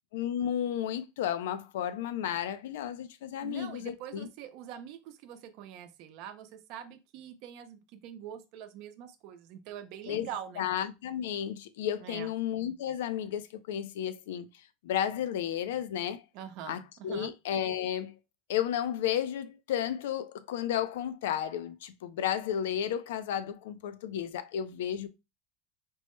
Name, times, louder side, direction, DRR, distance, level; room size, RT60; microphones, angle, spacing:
voice 1, 0.1-4.3 10.1-10.3 10.6-14.5 14.8-16.2 16.7-18.1 18.5-25.1, left 10 dB, 85° left, 0.4 m, -33 dB
voice 2, 3.4-10.7 12.0-12.3 16.3-17.3, right 9 dB, 55° right, 0.6 m, -44 dB
4.5 x 2.1 x 3.1 m
supercardioid pair, 135°, 0 cm